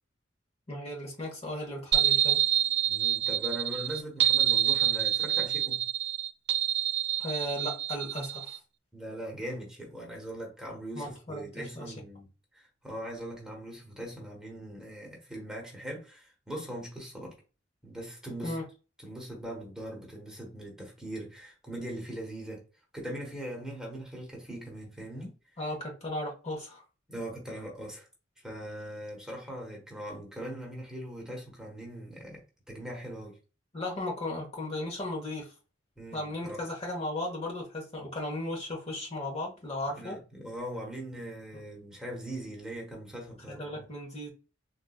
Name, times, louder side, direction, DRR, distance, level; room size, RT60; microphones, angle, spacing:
voice 1, 0.7-2.4 7.2-8.6 10.9-11.9 18.4-18.6 25.6-26.8 33.7-35.5 36.1-40.2 43.5-44.3, left 1 dB, 35° left, 1.0 m, -36 dB
sound 1, 1.9-8.6, right 11 dB, 60° right, 0.5 m, -27 dB
voice 2, 2.9-5.8 8.9-17.3 17.8-18.6 19.0-22.6 22.9-25.3 27.1-28.1 28.4-32.4 32.7-33.4 36.0-36.6 40.0-43.9, right 1 dB, 5° right, 1.1 m, -40 dB
3.9 x 2.6 x 2.3 m
head